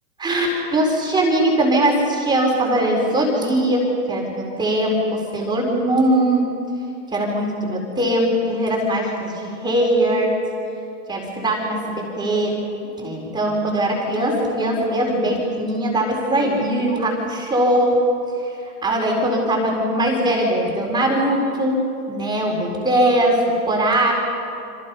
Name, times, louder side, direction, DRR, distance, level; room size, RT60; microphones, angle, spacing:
voice 1, 0.2-6.5 7.1-10.3 11.1-12.6 13.0-18.0 18.4-21.8 22.1-24.1, right 1 dB, 10° right, -2 dB, 4.2 m, -20 dB
29.0 x 27.0 x 5.5 m, 2.5 s
hypercardioid pair, 155°, 48 cm